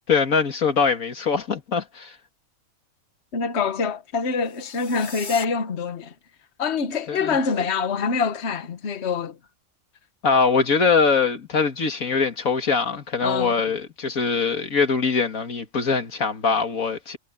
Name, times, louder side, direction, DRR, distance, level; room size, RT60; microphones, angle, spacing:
voice 1, 0.1-2.2 7.1-7.4 10.2-17.2, left 5 dB, 85° left, 2.3 m, -22 dB
voice 2, 3.3-6.1 6.6-9.4 13.2-13.6, left 5 dB, 55° left, 1.5 m, -25 dB
sound 1, 4.4-5.5, left 2 dB, 35° left, 2.1 m, -38 dB
omnidirectional pair, 1.4 m